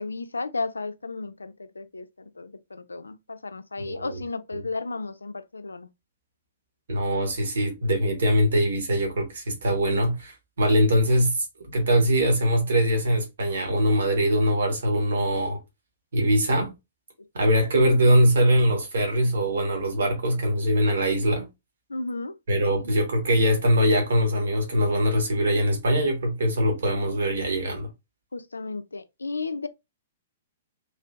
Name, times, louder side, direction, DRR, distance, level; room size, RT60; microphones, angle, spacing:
voice 1, 0.0-5.9 17.2-17.5 21.9-22.3 22.8-22.9 28.3-29.7, left 3 dB, 80° left, 0.3 m, -34 dB
voice 2, 3.9-4.2 4.5-4.6 6.9-15.6 16.1-16.7 17.3-21.5 22.5-27.9, equal, 65° right, 1.2 m, -22 dB
3.2 x 2.6 x 2.3 m
figure-of-eight pair, 110°, 0 cm